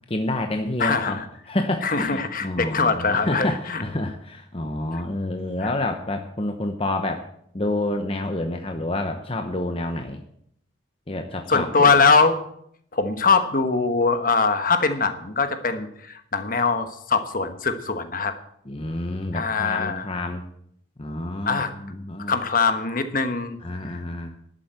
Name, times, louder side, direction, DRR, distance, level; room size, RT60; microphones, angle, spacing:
voice 1, 0.1-1.2 1.5-7.3 7.5-10.2 11.1-11.9 18.6-20.4 21.0-22.3 23.6-24.3, left 1 dB, 30° left, 5 dB, 0.9 m, -28 dB
voice 2, 0.8-1.2 1.8-3.8 11.5-12.4 12.9-18.3 19.3-20.0 21.5-21.7 22.3-23.6, left 4 dB, 45° left, 8 dB, 1.2 m, -22 dB
11.5 x 8.3 x 8.2 m, 0.69 s
head